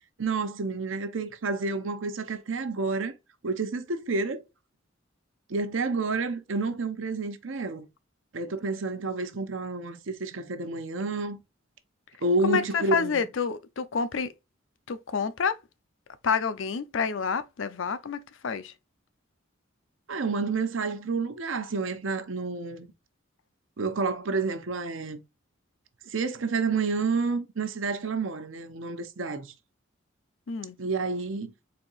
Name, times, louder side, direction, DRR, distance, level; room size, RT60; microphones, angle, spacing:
voice 1, 0.2-3.2 3.4-4.4 5.5-7.9 8.3-11.4 12.2-13.2 20.1-22.9 23.8-25.2 26.0-29.5 30.8-31.5, right 3 dB, 70° right, 0.7 m, -29 dB
voice 2, 12.4-14.3 14.9-15.6 16.2-18.7 30.5-30.8, left 5 dB, 70° left, 0.5 m, -28 dB
4.3 x 2.8 x 3.9 m
head